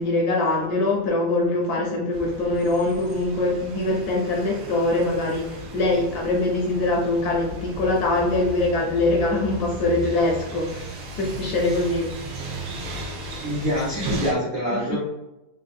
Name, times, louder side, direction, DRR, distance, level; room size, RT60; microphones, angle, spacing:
voice 1, 0.0-12.2 14.7-15.0, left 2 dB, 70° left, -1 dB, 0.9 m, -23 dB
sound 1, 2.1-14.3, equal, 80° right, 1.4 m, -35 dB
voice 2, 13.4-15.0, equal, 50° right, -7 dB, 0.7 m, -25 dB
3.3 x 2.6 x 2.4 m, 0.96 s
omnidirectional pair, 2.0 m